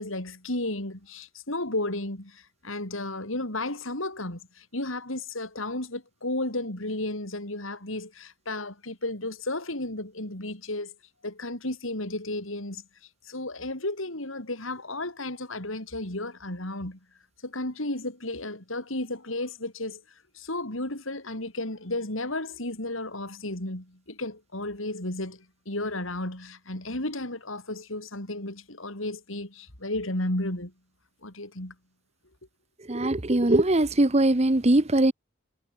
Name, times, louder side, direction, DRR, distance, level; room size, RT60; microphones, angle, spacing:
voice 1, 0.0-10.9 11.2-12.8 13.2-17.0 17.4-20.0 20.3-30.7 31.2-31.7, left 2 dB, 75° left, 5.6 m, -33 dB
voice 2, 32.9-35.1, right 1 dB, 30° right, 1.1 m, -21 dB
head